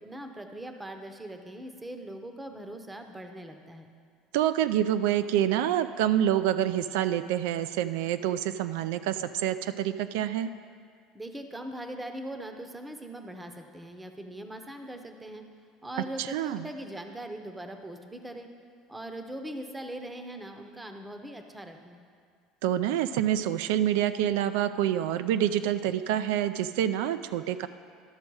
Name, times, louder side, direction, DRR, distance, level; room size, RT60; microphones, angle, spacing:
voice 1, 0.0-3.9 11.1-15.4 15.8-18.5 18.9-22.0, right 1 dB, 10° right, 5 dB, 0.7 m, -40 dB
voice 2, 4.3-10.5 16.2-16.7 22.6-27.7, right 11 dB, 85° right, 11 dB, 0.3 m, -27 dB
12.0 x 6.3 x 4.7 m, 2.1 s
cardioid pair, 135°, 0 cm